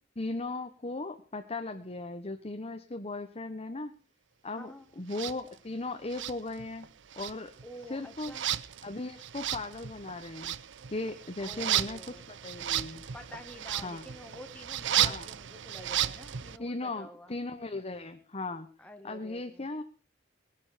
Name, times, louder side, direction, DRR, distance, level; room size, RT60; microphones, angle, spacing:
voice 1, 0.2-3.9 4.4-6.9 7.2-7.5 7.9-8.3 8.8-10.6 10.9-12.0 12.3-13.0 13.8-14.0 14.9-15.3 16.6-18.7 19.0-19.8, left 2 dB, 35° left, 6 dB, 1.2 m, -37 dB
sound 1, 5.1-5.4 6.1-6.9 7.1-16.6, right 11 dB, 70° right, 0.7 m, -34 dB
voice 2, 7.6-8.5 11.4-12.2 13.1-17.4 18.8-19.7, equal, 5° left, 4 dB, 1.6 m, -48 dB
19.5 x 11.0 x 5.1 m, 0.40 s
head